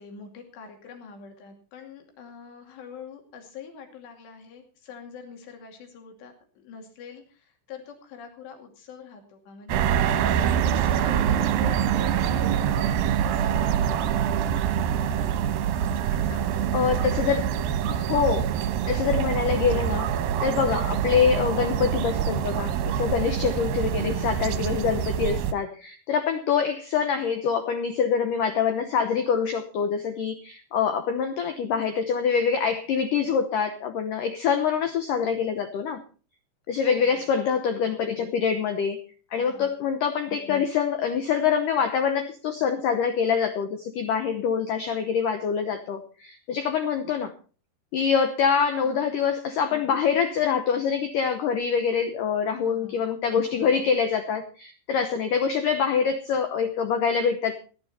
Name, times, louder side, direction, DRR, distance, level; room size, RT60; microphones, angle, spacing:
voice 1, 0.0-14.7 16.1-16.9 18.8-19.1 23.0-23.4 36.8-37.3 39.3-39.8 48.8-49.1 52.5-53.0, left 6 dB, 70° left, 4 dB, 4.6 m, -45 dB
sound 1, 9.7-25.5, right 9 dB, 75° right, 2.3 m, -25 dB
voice 2, 16.7-17.5 17.9-20.1 20.4-36.0 36.7-39.1 39.3-47.3 47.9-57.6, left 6 dB, 90° left, 8 dB, 1.8 m, -25 dB
16.5 x 11.5 x 4.2 m, 0.37 s
omnidirectional pair, 5.3 m